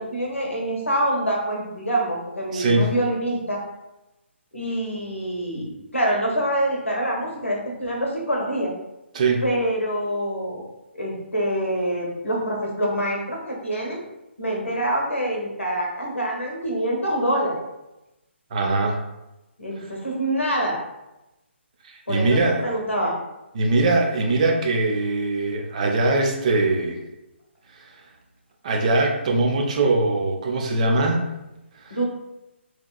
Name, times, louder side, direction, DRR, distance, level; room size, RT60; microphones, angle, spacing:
voice 1, 0.0-3.6 4.5-8.7 9.4-10.6 10.9-14.0 14.4-17.6 19.6-20.8 22.1-23.2 31.9-32.0, right 1 dB, 85° left, -1 dB, 0.8 m, -25 dB
voice 2, 2.5-2.9 9.1-9.4 18.5-19.0 21.8-22.6 23.5-27.0 28.6-31.3 31.8-32.0, right 2 dB, 35° right, 1 dB, 0.4 m, -21 dB
2.9 x 2.2 x 2.2 m, 0.96 s
figure-of-eight pair, 140°, 7 cm